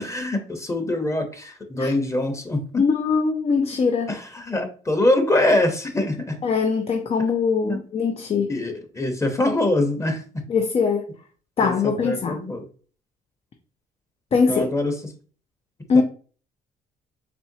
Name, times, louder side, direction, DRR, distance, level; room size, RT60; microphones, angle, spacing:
voice 1, 0.0-2.6 4.1-6.4 7.6-7.8 8.5-10.4 11.6-12.6 14.5-14.9 15.9-16.0, left 1 dB, 20° left, 0.9 m, -24 dB
voice 2, 2.8-4.1 6.4-8.5 10.5-11.1 11.6-12.4 14.3-14.7 15.9-16.0, left 5 dB, 40° left, 0.6 m, -21 dB
4.3 x 3.2 x 2.7 m
cardioid pair, 85°, 15 cm